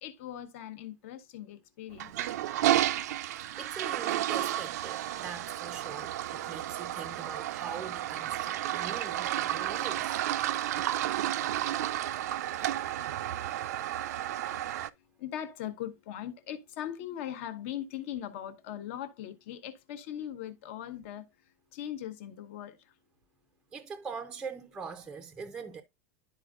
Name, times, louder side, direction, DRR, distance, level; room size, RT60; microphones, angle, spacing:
voice 1, 0.0-2.3 15.0-22.9, left 11 dB, 50° left, 1.0 m, -40 dB
Toilet flush, 1.9-14.9, right 13 dB, 80° right, 0.5 m, -32 dB
voice 2, 3.6-10.2 23.7-25.8, right 6 dB, 10° right, 0.5 m, -42 dB
11.5 x 4.4 x 2.4 m
supercardioid pair, 170°, 9 cm